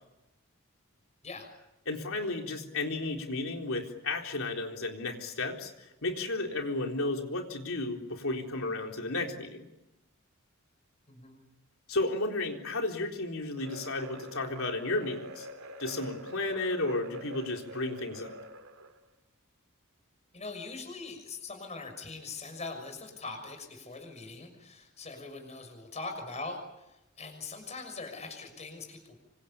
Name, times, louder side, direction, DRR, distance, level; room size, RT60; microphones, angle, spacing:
voice 1, 1.9-9.7 11.9-15.5 15.8-18.3, left 2 dB, 70° left, 2 dB, 4.0 m, -33 dB
voice 2, 11.1-11.4 20.3-29.2, left 3 dB, 30° left, 5 dB, 6.3 m, -42 dB
sound 1, 13.6-19.0, right 1 dB, 85° right, 2.8 m, -46 dB
27.0 x 25.5 x 8.6 m, 0.93 s
head